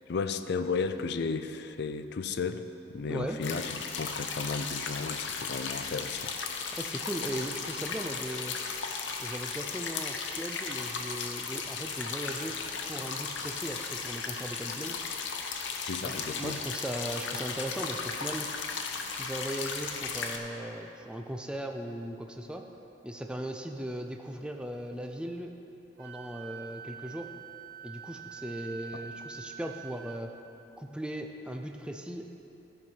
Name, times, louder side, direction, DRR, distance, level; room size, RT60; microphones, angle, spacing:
voice 1, 0.1-6.3 15.8-16.6, left 4 dB, 65° left, 10 dB, 0.4 m, -34 dB
voice 2, 3.1-3.4 6.7-8.6 9.2-15.0 16.0-18.5 19.1-22.7 23.0-25.5 26.0-27.3 27.8-30.3 30.8-32.3, right 1 dB, 5° right, 3 dB, 0.4 m, -38 dB
sound 1, 3.4-20.4, left 5 dB, 85° left, 0.8 m, -36 dB
Wind instrument woodwind instrument, 26.0-30.2, right 7 dB, 65° right, 0.7 m, -45 dB
13.5 x 4.7 x 5.6 m, 2.9 s
head